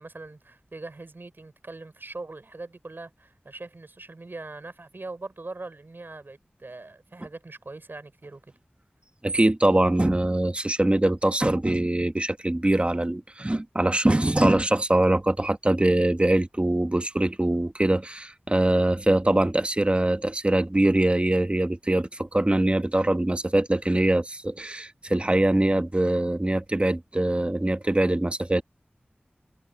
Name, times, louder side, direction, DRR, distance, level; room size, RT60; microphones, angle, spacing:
voice 1, 0.0-8.4, right 2 dB, 65° right, 5.3 m, -41 dB
voice 2, 9.2-28.6, right 1 dB, 30° right, 1.3 m, -23 dB
wide cardioid pair, 40°, 4 cm